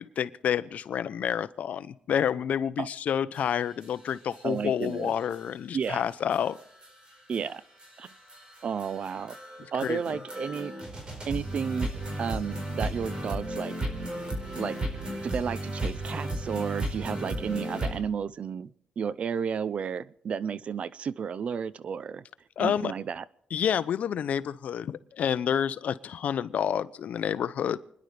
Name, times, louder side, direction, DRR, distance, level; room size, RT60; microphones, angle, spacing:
voice 1, 0.0-6.6 9.8-10.0 22.6-22.9 23.5-27.8, left 8 dB, 65° left, 14 dB, 0.7 m, -29 dB
sound 1, 3.3-3.4 3.8-3.9 4.3-4.4 4.8-4.9 5.3-5.4 5.8-5.9 6.3-18.0, right 1 dB, 35° right, 4.5 m, -34 dB
voice 2, 4.4-5.1 5.7-6.0 7.3-7.6 8.0-8.1 8.6-9.4 9.7-10.7 11.3-13.7 14.5-14.8 15.2-18.7 19.0-22.2 22.6-23.2, right 7 dB, 50° right, 18 dB, 0.6 m, -32 dB
29.5 x 11.0 x 3.4 m, 0.79 s
cardioid pair, 125°, 3 cm